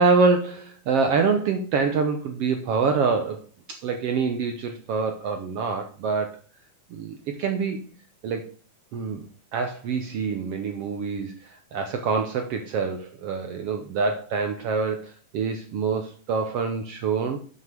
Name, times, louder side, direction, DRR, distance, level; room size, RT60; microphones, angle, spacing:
voice 1, 0.0-3.4 3.7-6.4 6.9-7.8 8.2-8.5 8.9-9.2 9.5-17.4, right 4 dB, 70° right, 5 dB, 1.5 m, -25 dB
7.6 x 6.0 x 6.6 m, 0.41 s
omnidirectional pair, 3.7 m